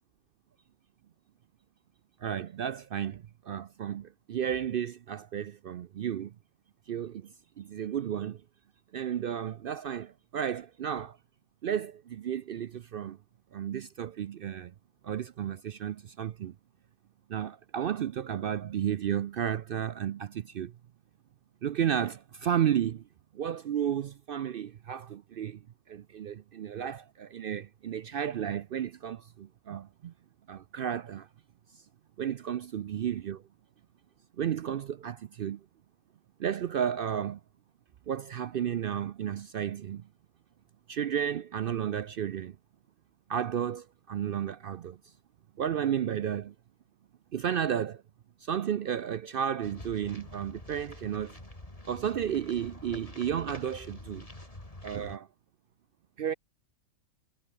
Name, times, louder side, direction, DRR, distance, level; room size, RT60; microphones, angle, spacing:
voice 1, 2.2-6.3 6.9-8.4 8.9-11.2 11.6-13.2 13.5-14.7 15.0-16.5 17.3-20.7 21.6-23.0 23.3-25.6 25.9-30.1 30.5-31.3 31.7-31.8 32.2-33.4 34.4-35.6 36.4-37.4 38.1-40.1 40.9-42.6 43.3-45.0 45.6-46.5 47.3-48.0 48.4-51.4 51.9-54.3 54.8-55.3 56.2-56.3, right 9 dB, 65° right, 0.5 m, -33 dB
sound 1, 49.6-55.2, left 1 dB, 25° left, 3.5 m, -47 dB
omnidirectional pair, 1.5 m